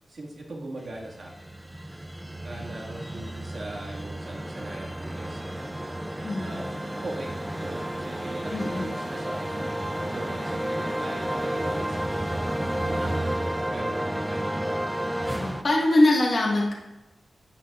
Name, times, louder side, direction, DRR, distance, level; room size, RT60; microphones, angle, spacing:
voice 1, 0.1-1.5 2.4-5.4 6.4-12.0 12.9-14.7 15.5-15.6, right 2 dB, 45° right, -3 dB, 1.9 m, -40 dB
sound 1, 0.9-15.6, right 1 dB, 5° right, 0.4 m, -31 dB
sound 2, 3.3-15.6, equal, 20° right, 2.7 m, -46 dB
voice 2, 6.2-6.6 8.5-8.9 15.3-16.7, left 1 dB, 40° left, -4 dB, 1.8 m, -23 dB
9.8 x 9.7 x 2.5 m, 1.0 s
wide cardioid pair, 170°, 0 cm